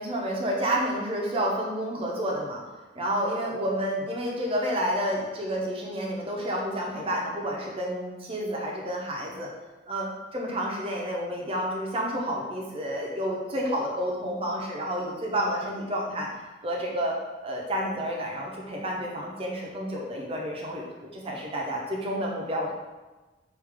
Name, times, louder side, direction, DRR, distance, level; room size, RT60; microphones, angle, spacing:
voice 1, 0.0-2.6 2.9-9.5 9.9-10.1 10.3-16.3 16.6-17.2 17.4-22.7, equal, 30° right, -2 dB, 0.8 m, -30 dB
4.8 x 2.7 x 3.6 m, 1.2 s
head